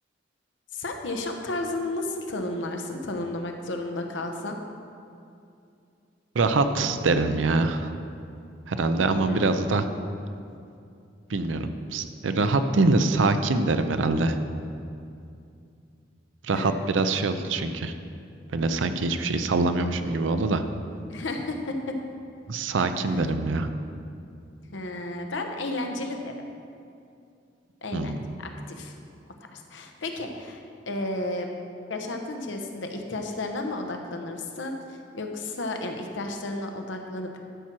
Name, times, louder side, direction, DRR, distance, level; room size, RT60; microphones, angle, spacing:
voice 1, 0.7-4.6 9.2-9.6 16.5-17.0 21.1-22.0 24.7-26.3 27.8-28.9 29.5-30.6 30.9-31.5 31.9-34.8 35.1-37.5, left 2 dB, 80° left, 4 dB, 0.9 m, -32 dB
voice 2, 6.3-7.9 8.7-9.9 11.3-14.4 16.4-17.9 18.5-20.6 22.5-23.7 27.9-28.2, right 3 dB, 90° right, 9 dB, 0.5 m, -24 dB
11.5 x 6.1 x 4.5 m, 2.5 s
head